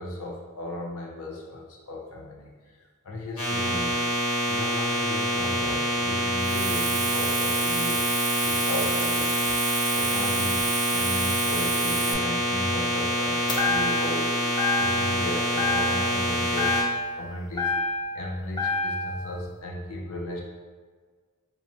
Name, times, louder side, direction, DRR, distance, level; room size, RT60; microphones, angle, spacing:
voice 1, 0.0-2.8 3.0-9.5 9.9-14.5 14.8-16.8 17.2-20.4, left 1 dB, 70° left, -2 dB, 0.6 m, -35 dB
sound 1, 3.4-16.8, equal, 90° left, 1.3 m, -26 dB
Hiss, 6.4-12.1, right 6 dB, 45° right, 0.4 m, -30 dB
sound 2, 13.5-14.2 14.6-15.2 15.6-16.3 16.6-18.2 18.6-19.2, left 3 dB, 20° left, 0.4 m, -27 dB
4.1 x 2.3 x 2.8 m, 1.5 s
head